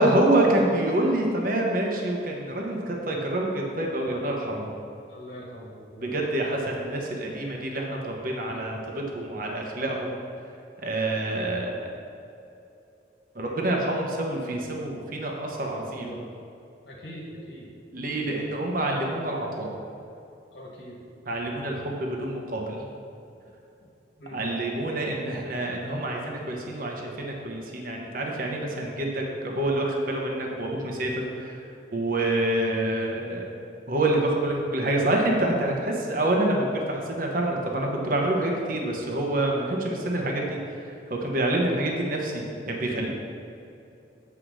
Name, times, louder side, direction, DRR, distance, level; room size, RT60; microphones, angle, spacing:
voice 1, 0.0-4.7 6.0-10.2 10.8-11.9 13.3-16.1 17.9-19.7 21.3-22.8 24.3-31.6 31.9-33.4 33.9-42.3 42.7-43.1, right 1 dB, 50° right, 0 dB, 1.1 m, -27 dB
voice 2, 5.1-6.1 13.4-13.6 15.6-16.3 16.8-17.7 20.5-21.0 24.2-24.4 41.9-42.1, equal, 75° left, -4 dB, 1.7 m, -42 dB
8.1 x 4.8 x 6.3 m, 2.7 s
head